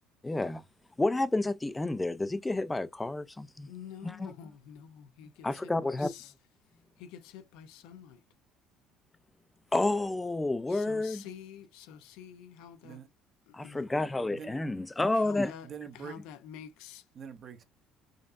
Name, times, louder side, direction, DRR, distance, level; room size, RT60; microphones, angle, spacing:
voice 1, 0.2-0.6 1.0-3.7 4.0-4.3 5.4-6.1 9.7-11.2 13.5-15.5, left 2 dB, 15° left, 0.4 m, -30 dB
voice 2, 3.7-6.3 7.0-8.2 10.7-13.0 13.5-13.8 15.1-17.1, left 8 dB, 85° left, 0.6 m, -48 dB
voice 3, 14.3-14.9 15.6-16.2 17.2-17.6, right 7 dB, 45° right, 0.8 m, -45 dB
5.0 x 2.5 x 2.5 m
cardioid pair, 105°, 0 cm